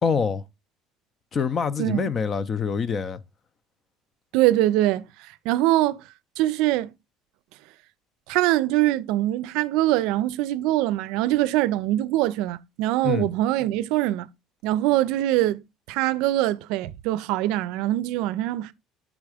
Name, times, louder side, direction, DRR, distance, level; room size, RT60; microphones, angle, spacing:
voice 1, 0.0-0.4 1.3-3.2 13.0-13.3, left 6 dB, 25° left, 0.5 m, -25 dB
voice 2, 1.8-2.1 4.3-6.0 6.4-6.9 8.3-14.3 14.6-15.6 15.9-18.7, right 15 dB, 75° right, 0.5 m, -23 dB
7.3 x 3.5 x 4.9 m
cardioid pair, 165°, 0 cm